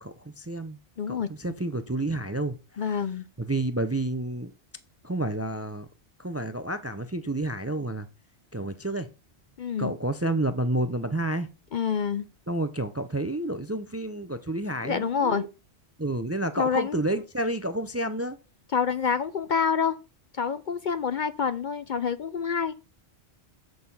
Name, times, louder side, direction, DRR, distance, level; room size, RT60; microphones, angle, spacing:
voice 1, 0.0-0.8 1.1-2.8 3.4-4.5 5.0-5.9 6.2-8.1 8.5-9.1 9.8-11.5 12.5-15.5 16.0-18.4, right 1 dB, 20° right, 0.5 m, -30 dB
voice 2, 1.0-1.3 2.8-3.3 9.6-9.9 11.7-12.3 14.8-15.4 16.6-17.0 18.7-20.0 20.3-22.7, left 6 dB, 55° left, 0.6 m, -27 dB
7.8 x 6.6 x 5.5 m
omnidirectional pair, 1.1 m